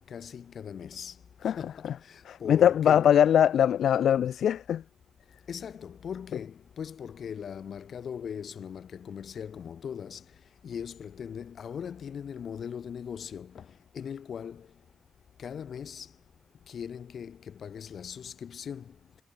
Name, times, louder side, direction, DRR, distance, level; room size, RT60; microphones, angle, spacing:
voice 1, 0.1-1.1 1.6-3.0 5.5-10.2 10.6-13.7 13.9-14.7 15.4-16.1 16.7-18.9, left 7 dB, 60° left, 4.6 m, -39 dB
voice 2, 2.3-4.8, left 9 dB, 75° left, 0.4 m, -22 dB
cardioid pair, 115°, 0 cm